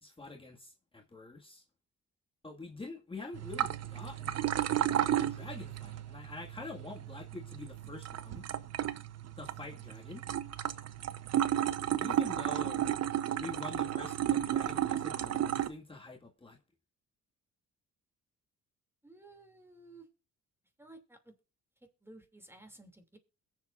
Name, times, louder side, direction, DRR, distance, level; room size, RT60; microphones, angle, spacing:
voice 1, 0.0-1.6 2.4-4.5 5.2-8.5 9.4-10.2 12.0-12.9 13.4-16.6, left 3 dB, 20° left, 2.0 m, -46 dB
sound 1, 3.3-15.7, right 11 dB, 55° right, 0.9 m, -33 dB
voice 2, 19.0-20.1 20.8-21.3 22.0-23.2, right 2 dB, 10° right, 2.9 m, -54 dB
22.0 x 7.4 x 2.6 m
cardioid pair, 90°, 30 cm